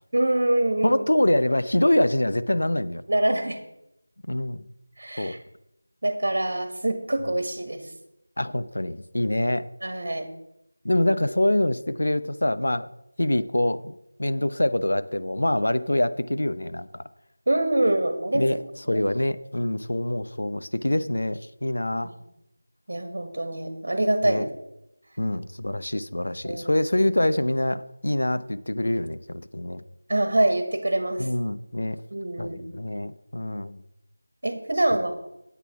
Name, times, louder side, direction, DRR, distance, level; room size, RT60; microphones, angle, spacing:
voice 1, 0.1-1.0 3.1-3.6 5.0-5.4 6.0-7.9 9.8-10.3 17.5-18.5 18.9-19.0 22.0-22.1 22.9-24.5 26.4-26.7 30.1-31.3 32.1-32.6 34.4-35.1, right 1 dB, 55° right, 7 dB, 1.6 m, -25 dB
voice 2, 0.8-3.0 4.3-4.6 5.2-5.4 8.4-9.7 10.8-12.9 13.2-13.9 14.2-17.0 18.3-18.6 18.9-22.1 24.2-24.4 25.2-29.8 31.2-32.0 32.4-33.8, left 1 dB, 65° left, 12 dB, 0.8 m, -25 dB
9.3 x 8.2 x 5.8 m, 0.85 s
figure-of-eight pair, 170°, 0 cm